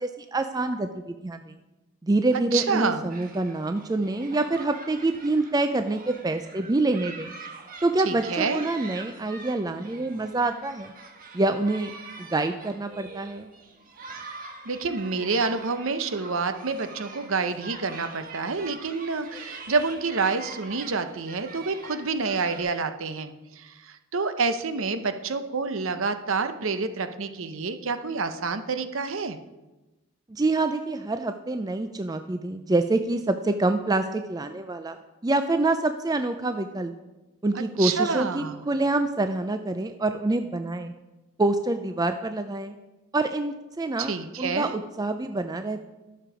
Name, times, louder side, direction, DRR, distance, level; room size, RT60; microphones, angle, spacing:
voice 1, 0.0-1.5 2.0-7.3 7.8-10.9 11.3-11.9 12.2-13.5 30.3-35.0 35.2-36.9 37.4-40.9 41.4-42.7 43.1-45.8, right 2 dB, 15° right, 8 dB, 0.4 m, -26 dB
voice 2, 2.5-3.0 8.0-8.6 14.7-29.4 37.5-38.6 44.0-44.7, right 4 dB, 60° right, 9 dB, 0.7 m, -28 dB
sound 1, 3.1-22.6, right 3 dB, 40° right, 1.2 m, -44 dB
12.0 x 6.9 x 4.9 m, 1.1 s
head